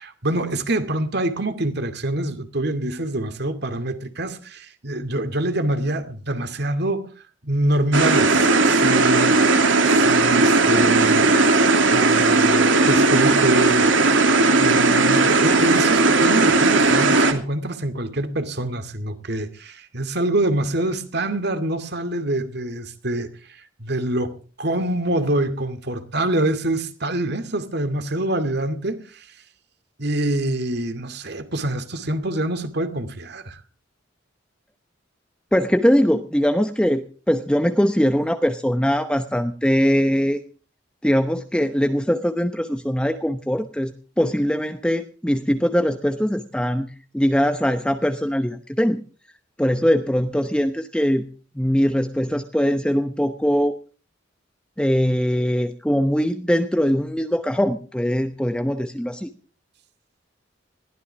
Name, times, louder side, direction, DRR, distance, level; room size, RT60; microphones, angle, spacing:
voice 1, 0.0-7.1 7.4-9.4 9.8-13.9 14.4-23.3 23.8-29.3 30.0-33.6, right 1 dB, 60° right, 2.4 m, -25 dB
sound 1, 7.9-17.3, right 3 dB, 85° right, 2.7 m, -17 dB
voice 2, 35.5-40.4 41.0-49.0 49.6-51.3 51.6-53.8 54.8-59.3, equal, 5° left, 0.9 m, -21 dB
21.0 x 16.0 x 3.5 m
head